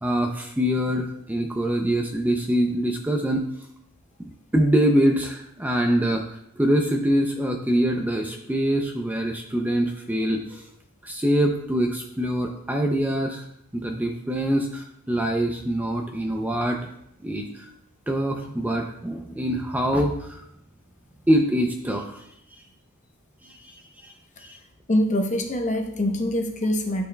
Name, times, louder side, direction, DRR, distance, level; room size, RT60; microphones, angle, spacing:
voice 1, 0.0-3.4 4.2-10.7 11.0-13.4 13.7-16.8 17.2-17.7 18.1-20.4 21.3-22.3 23.4-24.1 24.4-24.6, equal, 10° right, 2 dB, 0.5 m, -24 dB
voice 2, 24.9-27.0, left 1 dB, 35° left, 3 dB, 0.8 m, -24 dB
11.5 x 4.5 x 2.2 m, 0.74 s
head